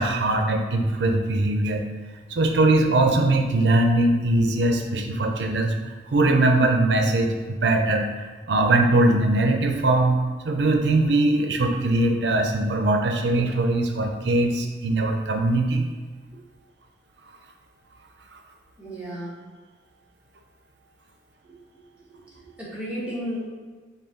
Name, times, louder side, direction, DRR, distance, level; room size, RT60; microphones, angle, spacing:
voice 1, 0.0-1.8 2.3-5.7 6.1-10.2 10.4-15.9, right 2 dB, 70° right, 3 dB, 0.5 m, -21 dB
voice 2, 18.8-19.4 22.2-23.5, equal, 5° right, -8 dB, 1.1 m, -33 dB
5.4 x 2.3 x 3.7 m, 1.4 s
head